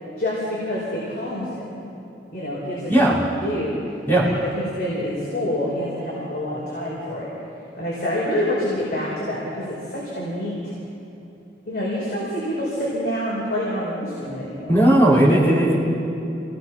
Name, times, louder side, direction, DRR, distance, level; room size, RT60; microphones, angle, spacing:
voice 1, 0.2-1.8 2.3-2.9 3.4-3.7 4.1-7.3 7.8-10.7 11.7-14.8, left 1 dB, 60° left, -6 dB, 5.2 m, -27 dB
voice 2, 14.7-15.8, right 1 dB, 10° left, -7 dB, 5.5 m, -16 dB
28.0 x 19.0 x 6.0 m, 2.8 s
head